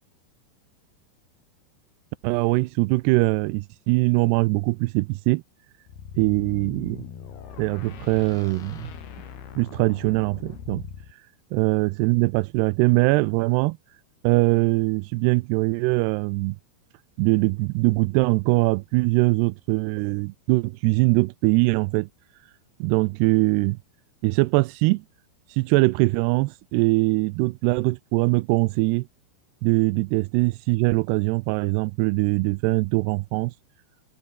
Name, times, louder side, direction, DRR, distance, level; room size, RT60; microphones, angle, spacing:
voice 1, 2.2-5.4 6.2-7.1 7.6-8.9 9.6-10.8 11.5-13.8 14.2-16.6 17.2-22.1 22.8-23.8 24.2-25.0 25.5-29.1 29.6-33.5, right 23 dB, 85° right, 2.5 m, -22 dB
sound 1, 5.9-11.1, left 8 dB, 65° left, 4.9 m, -40 dB
omnidirectional pair, 5.1 m